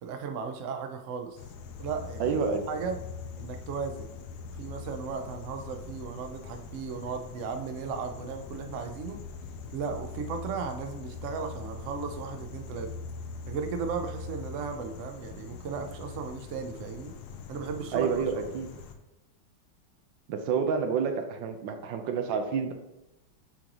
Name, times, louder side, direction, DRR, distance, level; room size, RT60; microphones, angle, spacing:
voice 1, 0.0-1.4 1.8-2.3 2.7-3.0 3.4-4.1 4.6-9.2 9.7-12.9 13.5-17.1 17.5-18.1, right 5 dB, 90° right, 5 dB, 0.6 m, -36 dB
sound 1, 1.4-18.9, left 5 dB, 70° left, 1.0 m, -42 dB
voice 2, 2.2-2.7 17.9-18.7 20.3-22.7, right 6 dB, 70° right, 6 dB, 1.3 m, -29 dB
8.7 x 3.8 x 3.0 m, 0.97 s
omnidirectional pair, 2.2 m